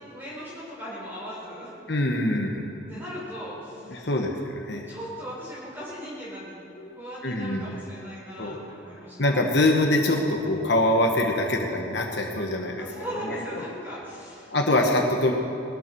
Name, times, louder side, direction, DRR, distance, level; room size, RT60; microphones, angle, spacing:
voice 1, 0.1-1.7 2.9-4.1 4.9-6.6 6.9-9.2 12.8-14.5, equal, 10° right, -8 dB, 4.3 m, -38 dB
voice 2, 1.9-2.7 3.9-4.9 6.8-6.9 7.2-7.8 8.4-8.6 9.2-12.9 13.1-13.6 14.5-15.3, left 1 dB, 60° left, 2 dB, 1.3 m, -24 dB
21.0 x 12.5 x 4.6 m, 2.9 s
head